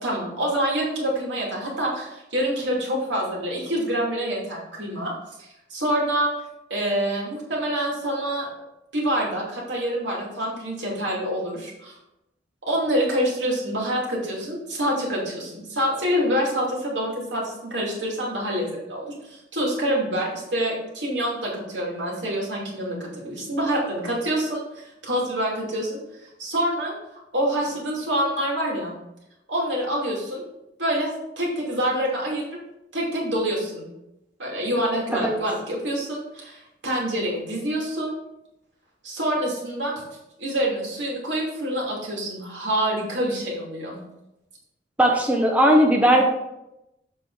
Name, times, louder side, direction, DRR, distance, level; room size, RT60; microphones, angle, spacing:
voice 1, 0.0-5.1 5.4-6.3 6.7-8.5 8.9-12.0 12.7-26.9 27.3-28.9 29.5-30.4 30.8-32.5 32.9-33.9 34.4-38.1 39.0-39.9 40.4-44.0, equal, 90° right, -3 dB, 2.7 m, -26 dB
voice 2, 45.0-46.2, equal, 10° right, 1 dB, 0.8 m, -18 dB
7.2 x 5.5 x 3.9 m, 0.88 s
head